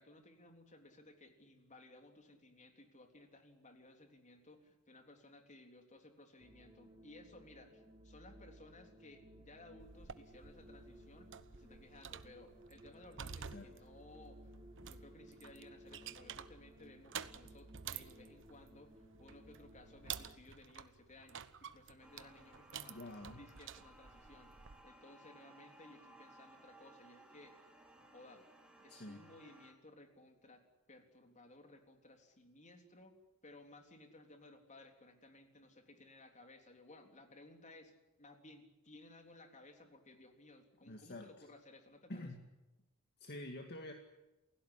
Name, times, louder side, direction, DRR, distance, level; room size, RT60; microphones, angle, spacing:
voice 1, 0.0-11.3 11.5-14.4 14.8-23.0 23.3-27.6 28.1-28.4 28.8-33.2 33.4-37.9 38.2-42.3, left 2 dB, 35° left, 5 dB, 3.6 m, -59 dB
sound 1, 6.4-20.4, equal, 25° right, 2.5 m, -59 dB
sound 2, 9.8-24.8, right 8 dB, 60° right, 1.0 m, -51 dB
sound 3, 22.0-29.7, right 1 dB, 5° right, 3.6 m, -61 dB
voice 2, 22.9-23.4 28.9-29.2 40.9-41.5 42.1-42.4 43.2-43.9, left 1 dB, 50° left, 4 dB, 2.1 m, -47 dB
28.5 x 17.0 x 10.0 m, 1.0 s
head